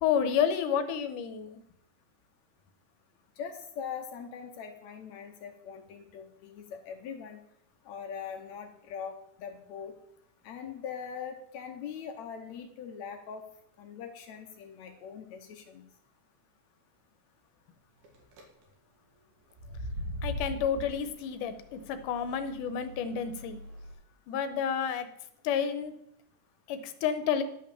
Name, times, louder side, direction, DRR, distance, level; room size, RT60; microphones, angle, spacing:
voice 1, 0.0-1.6 20.2-23.6 24.3-25.1 25.4-25.9 26.7-27.4, left 8 dB, 90° left, 10 dB, 2.4 m, -30 dB
voice 2, 3.4-7.4 7.9-9.2 9.4-9.9 10.4-13.4 13.8-15.8, left 7 dB, 70° left, 5 dB, 2.1 m, -41 dB
sound 1, 18.0-18.4 19.5-23.9, equal, 80° right, 3.4 m, -40 dB
11.0 x 5.5 x 6.8 m, 0.75 s
omnidirectional pair, 3.6 m